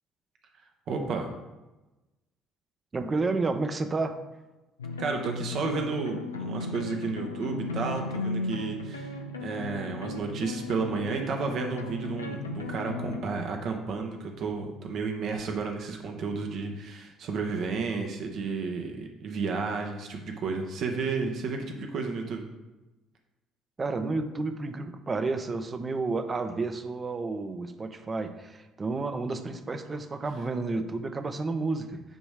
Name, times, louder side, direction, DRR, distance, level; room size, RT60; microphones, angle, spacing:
voice 1, 0.9-1.3 5.0-9.1 9.4-22.5, right 4 dB, 55° right, 3 dB, 0.9 m, -32 dB
voice 2, 2.9-4.2 23.8-32.0, right 3 dB, 30° right, 8 dB, 0.7 m, -31 dB
sound 1, 4.8-13.2, left 2 dB, 85° left, 0.5 m, -36 dB
9.0 x 3.1 x 4.9 m, 1.1 s
figure-of-eight pair, 55°, 0 cm